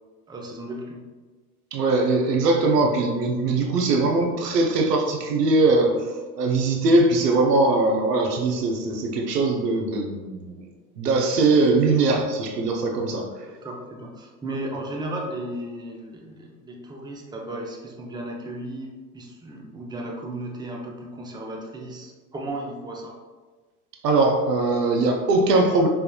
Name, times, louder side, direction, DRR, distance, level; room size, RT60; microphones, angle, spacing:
voice 1, 0.3-1.0 13.6-23.2, right 1 dB, 10° right, 0 dB, 0.6 m, -35 dB
voice 2, 1.7-5.9 6.4-10.6 11.0-13.2 24.0-25.9, right 3 dB, 75° right, 2 dB, 0.8 m, -21 dB
5.0 x 3.4 x 2.2 m, 1.3 s
figure-of-eight pair, 75°, 48 cm